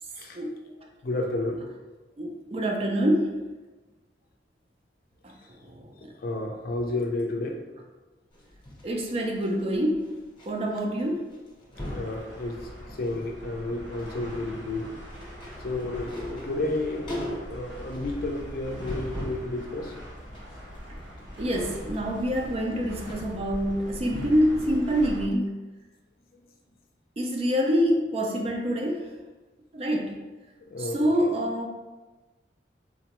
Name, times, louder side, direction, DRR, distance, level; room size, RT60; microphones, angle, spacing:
voice 1, 1.0-1.6 6.2-7.6 11.9-14.9 15.6-17.1 17.5-19.9 26.3-26.4 30.6-31.3, left 2 dB, 55° left, 1 dB, 0.5 m, -31 dB
voice 2, 2.2-3.4 5.2-5.3 5.6-6.1 8.8-10.1 10.5-11.3 21.4-25.6 27.2-29.1 29.7-30.1 30.8-31.8, equal, 35° right, 1 dB, 0.4 m, -26 dB
sound 1, 8.3-10.5 10.8-11.0 11.3-12.1 12.7-13.3 13.6-19.5 19.9-24.6 24.9-25.0, left 1 dB, 30° left, 0.8 m, -40 dB
sound 2, 11.7-25.3, equal, 85° right, 0.9 m, -42 dB
3.8 x 2.2 x 2.9 m, 1.2 s
head